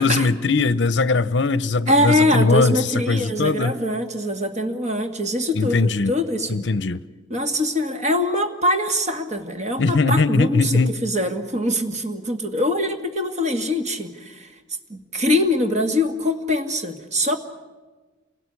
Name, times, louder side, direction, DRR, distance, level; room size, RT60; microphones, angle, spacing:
voice 1, 0.0-3.8 5.5-6.1 6.5-7.0 9.8-11.0, left 3 dB, 60° left, 0.7 m, -20 dB
voice 2, 1.9-6.6 7.3-14.5 14.9-17.4, left 1 dB, 35° right, 2.1 m, -23 dB
28.0 x 18.5 x 9.8 m
head